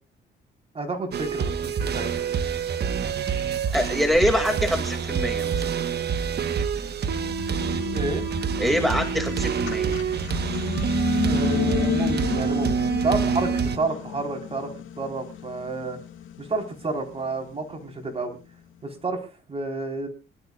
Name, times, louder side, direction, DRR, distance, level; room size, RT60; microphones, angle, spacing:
voice 1, 0.7-2.1 7.9-8.2 11.2-12.7 13.0-14.7 15.0-16.0 16.4-18.4 18.8-19.2 19.5-20.1, right 3 dB, 30° right, 4 dB, 4.2 m, -30 dB
sound 1, 1.1-13.8, right 6 dB, 55° right, 1.2 m, -26 dB
sound 2, 3.3-3.4 4.0-6.3 6.9-18.2, left 10 dB, 80° left, 2.0 m, -33 dB
voice 2, 3.7-5.6 8.6-9.9, equal, ahead, 4 dB, 2.3 m, -24 dB
25.5 x 12.5 x 2.4 m, 0.31 s
cardioid pair, 90°, 20 cm